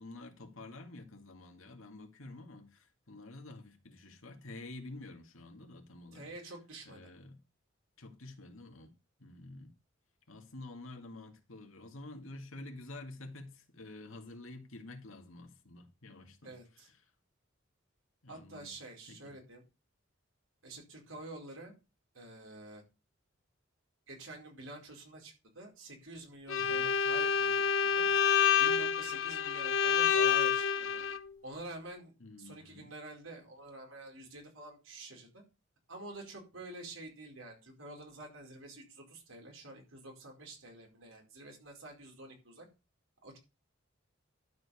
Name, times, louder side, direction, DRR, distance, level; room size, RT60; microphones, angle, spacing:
voice 1, 0.0-6.3 6.9-7.4 8.0-8.9 9.2-9.7 10.3-16.6 16.8-16.9 18.2-18.7 19.1-19.3 26.6-26.9 32.2-32.9, left 2 dB, 85° left, 2.2 m, -49 dB
voice 2, 6.1-7.1 16.4-16.9 18.3-19.6 20.6-21.7 22.1-22.8 24.1-28.0 28.6-31.0 31.4-32.1 32.4-35.4 35.9-42.7 43.2-43.4, right 2 dB, 85° right, 4.6 m, -48 dB
Bowed string instrument, 26.5-31.2, left 7 dB, 70° left, 0.8 m, -28 dB
12.0 x 4.9 x 7.0 m
head